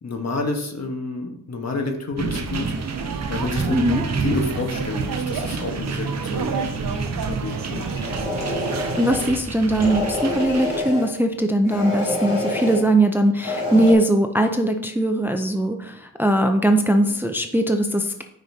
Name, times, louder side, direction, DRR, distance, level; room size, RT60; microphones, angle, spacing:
voice 1, 0.0-2.7 3.3-6.5 7.1-7.9, left 3 dB, 50° left, 4 dB, 1.3 m, -29 dB
sound 1, 2.2-10.8, right 4 dB, 50° right, 0.9 m, -31 dB
sound 2, 2.6-9.3, right 5 dB, 75° right, 0.8 m, -29 dB
voice 2, 3.7-4.0 9.0-18.2, right 1 dB, 5° right, 5 dB, 0.5 m, -20 dB
sound 3, 7.7-9.3 9.7-11.1 11.6-12.8 13.4-13.9, left 1 dB, 65° left, 2.6 m, -27 dB
9.1 x 5.4 x 2.8 m, 0.74 s
cardioid pair, 75°, 34 cm